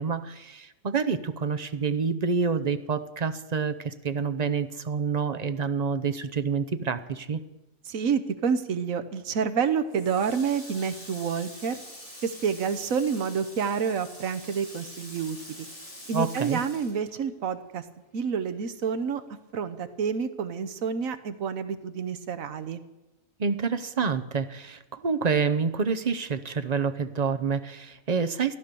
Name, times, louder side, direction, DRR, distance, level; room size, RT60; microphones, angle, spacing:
voice 1, 0.0-7.4 16.1-16.6 23.4-28.6, right 5 dB, 40° right, 10 dB, 0.7 m, -28 dB
voice 2, 7.9-11.8 12.2-15.7 16.1-17.8 18.1-19.2 19.5-22.8, right 6 dB, 75° right, 9 dB, 1.3 m, -28 dB
Water tap faucet, 9.9-17.7 18.1-19.4, left 1 dB, 25° left, 3.6 m, -45 dB
15.0 x 11.0 x 6.9 m, 1.0 s
omnidirectional pair, 1.4 m